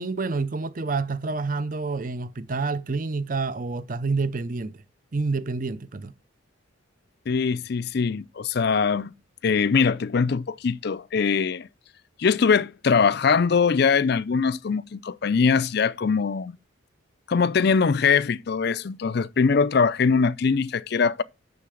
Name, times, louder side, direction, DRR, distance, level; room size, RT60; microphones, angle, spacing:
voice 1, 0.0-4.8 5.1-6.1, right 3 dB, 40° right, 0.6 m, -28 dB
voice 2, 7.3-9.1 9.4-11.7 12.2-16.6 17.3-21.2, left 5 dB, 50° left, 0.4 m, -22 dB
6.9 x 6.6 x 6.3 m
head